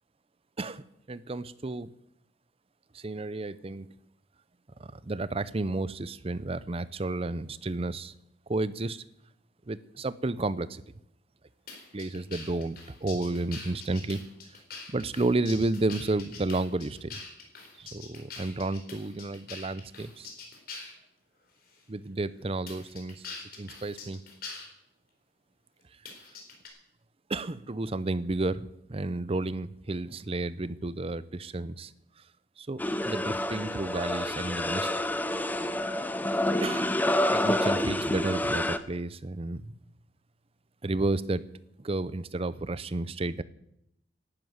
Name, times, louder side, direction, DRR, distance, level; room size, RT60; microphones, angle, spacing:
voice 1, 0.6-1.9 2.9-3.9 4.8-8.1 8.5-9.0 9.7-10.8 11.9-14.2 14.9-17.2 17.8-20.3 21.9-23.3 23.6-24.2 27.3-31.9 32.6-32.8 33.0-34.9 36.6-36.9 37.3-39.7 40.8-41.4 41.8-43.4, right 2 dB, 35° right, 17 dB, 0.6 m, -32 dB
sound 1, 11.7-21.0 21.7-21.8 22.7-24.7 26.1-26.7, left 4 dB, 55° left, 4.0 m, -44 dB
sound 2, 32.8-38.8, left 1 dB, 10° left, 0.7 m, -28 dB
12.0 x 10.5 x 9.5 m, 0.79 s
head